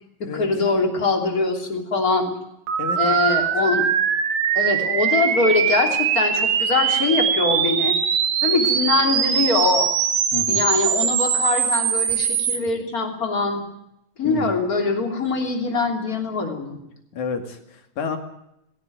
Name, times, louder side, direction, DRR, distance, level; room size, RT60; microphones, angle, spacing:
voice 1, 0.2-2.3 2.9-3.9 4.5-8.0 8.4-9.9 10.5-13.6 14.2-16.8, left 3 dB, 25° left, 3 dB, 3.2 m, -23 dB
sound 1, 2.7-12.6, right 8 dB, 70° right, 3.1 m, -22 dB
voice 2, 2.8-3.2 10.3-10.7 14.2-14.5 17.1-18.2, left 6 dB, 65° left, 6 dB, 3.4 m, -30 dB
18.5 x 16.5 x 9.2 m, 0.80 s
omnidirectional pair, 3.8 m